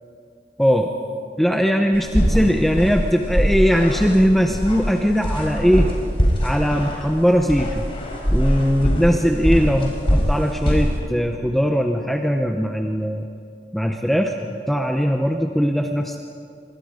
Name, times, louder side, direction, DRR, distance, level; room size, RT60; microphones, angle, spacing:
voice 1, 0.6-0.9 1.4-5.9 6.4-7.9 8.3-13.3 13.7-16.2, equal, ahead, 3 dB, 1.0 m, -20 dB
sound 1, 1.9-11.0, equal, 30° left, 4.6 m, -23 dB
26.0 x 25.0 x 5.2 m, 2.3 s
head